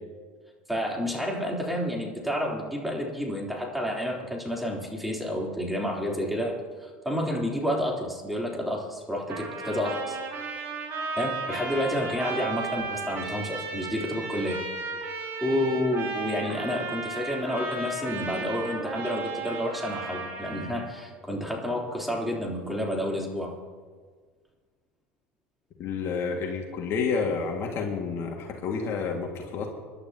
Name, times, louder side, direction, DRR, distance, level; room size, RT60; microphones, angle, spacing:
voice 1, 0.7-10.2 11.2-14.6 15.4-23.5, equal, ahead, -2 dB, 3.6 m, -30 dB
Trumpet, 9.3-20.9, right 3 dB, 50° right, 4.9 m, -34 dB
voice 2, 25.8-29.7, left 5 dB, 50° left, 1 dB, 2.1 m, -29 dB
25.5 x 11.5 x 2.9 m, 1.5 s
hypercardioid pair, 95°, 6 cm